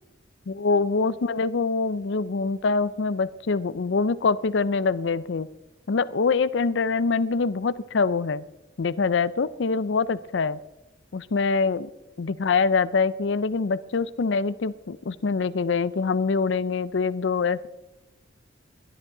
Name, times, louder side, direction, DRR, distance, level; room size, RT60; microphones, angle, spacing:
voice 1, 0.5-5.5 5.9-8.4 8.8-10.6 11.1-11.9 12.2-17.7, left 4 dB, 70° left, 17 dB, 0.5 m, -24 dB
20.0 x 12.5 x 3.8 m, 1.0 s
head